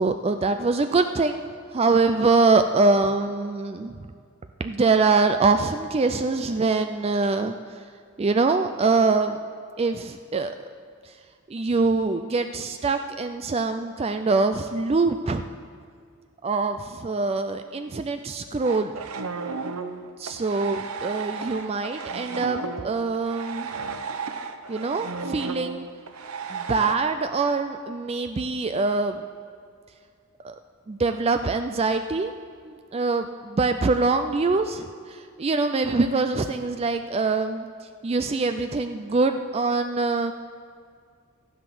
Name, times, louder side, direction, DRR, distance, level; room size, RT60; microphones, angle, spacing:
voice 1, 0.0-1.4 1.7-4.0 4.6-7.5 8.2-9.4 9.8-10.6 11.5-15.4 16.4-19.0 20.2-23.7 24.7-25.8 26.5-29.2 30.4-30.5 30.9-32.3 32.6-37.7 38.0-40.3, right 3 dB, 25° right, 8 dB, 0.4 m, -24 dB
sound 1, 18.6-27.0, right 5 dB, 80° right, 0.8 m, -33 dB
13.5 x 11.0 x 6.1 m, 2.1 s
head